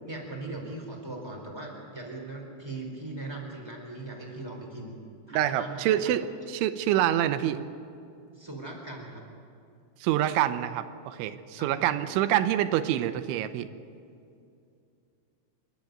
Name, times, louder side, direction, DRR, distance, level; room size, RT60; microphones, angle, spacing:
voice 1, 0.0-4.9 5.3-6.0 8.3-9.2 11.6-11.9, right 2 dB, 5° right, 0 dB, 3.4 m, -39 dB
voice 2, 5.3-7.6 10.0-13.7, right 12 dB, 90° right, 10 dB, 3.2 m, -26 dB
27.5 x 12.0 x 9.3 m, 2.4 s
omnidirectional pair, 5.4 m